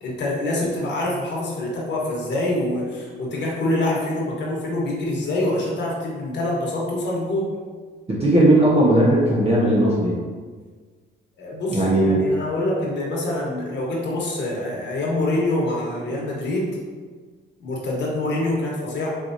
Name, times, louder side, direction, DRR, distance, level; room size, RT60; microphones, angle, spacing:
voice 1, 0.0-7.5 11.4-16.8 17.6-19.1, left 1 dB, 60° left, -4 dB, 1.2 m, -25 dB
voice 2, 8.2-10.1 11.7-12.2, right 1 dB, 30° right, -6 dB, 1.1 m, -17 dB
4.5 x 3.0 x 2.7 m, 1.5 s
cardioid pair, 90°, 20 cm